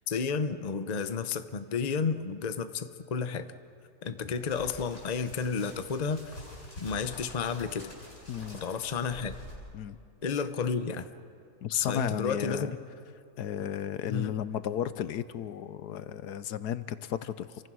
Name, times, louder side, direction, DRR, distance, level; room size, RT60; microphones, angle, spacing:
voice 1, 0.1-3.5 4.0-6.2 6.8-7.9 8.6-9.3 10.2-11.1 11.7-12.8 14.1-14.3, left 5 dB, 35° left, 10 dB, 0.8 m, -31 dB
sound 1, 4.1-9.6, left 1 dB, 65° left, 8.3 m, -47 dB
voice 2, 8.3-8.6 9.7-10.0 11.6-12.7 13.4-17.7, left 10 dB, 80° left, 13 dB, 1.3 m, -34 dB
29.0 x 24.5 x 6.2 m, 2.5 s
omnidirectional pair, 1.7 m